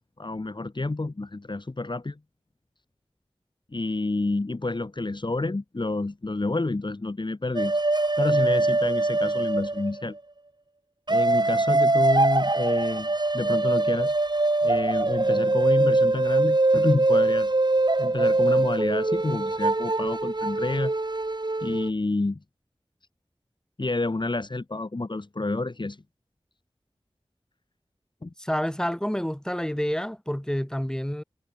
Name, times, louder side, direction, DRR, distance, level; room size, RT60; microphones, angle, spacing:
voice 1, 0.2-2.2 3.7-7.8 8.2-10.2 11.1-14.1 14.6-17.5 18.0-20.9 21.6-22.4 23.8-26.0 28.2-28.3, left 2 dB, 50° left, 3.2 m, -29 dB
sound 1, 7.5-10.1 11.1-21.9, right 2 dB, 50° right, 6.1 m, -23 dB
voice 2, 28.4-31.2, equal, 5° left, 7.7 m, -28 dB
wide cardioid pair, 65°, 10 cm